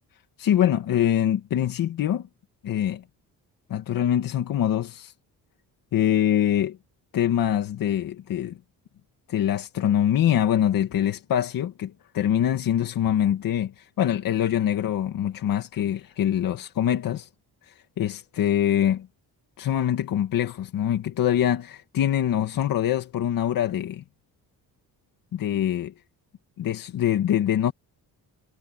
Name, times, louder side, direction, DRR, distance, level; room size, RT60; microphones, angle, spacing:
voice 1, 0.4-2.3 2.6-3.0 3.7-5.1 5.9-6.8 7.1-8.6 9.3-17.3 17.6-19.1 19.6-24.0 25.3-25.9 26.6-27.7, left 10 dB, 60° left, 1.9 m, -24 dB
cardioid pair, 180°, 38 cm